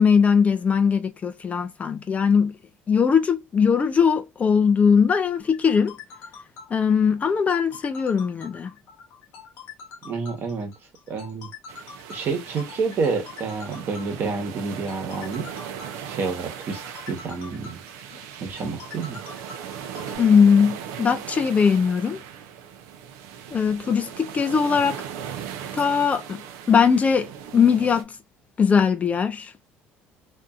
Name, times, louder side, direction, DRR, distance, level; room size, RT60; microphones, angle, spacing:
voice 1, 0.0-2.6 2.9-6.0 6.7-8.7 20.2-22.2 23.5-25.0 25.7-26.4 26.7-28.1 28.6-29.5, left 6 dB, 30° left, 0.4 m, -20 dB
sound 1, 5.4-20.2, left 6 dB, 70° left, 0.9 m, -44 dB
voice 2, 10.0-10.7 11.1-11.5 12.1-15.5 16.1-17.8 18.4-19.2, right 4 dB, 50° right, 1.1 m, -29 dB
sound 2, 11.7-28.0, right 9 dB, 80° right, 0.5 m, -38 dB
2.6 x 2.6 x 2.3 m
supercardioid pair, 100°, 5 cm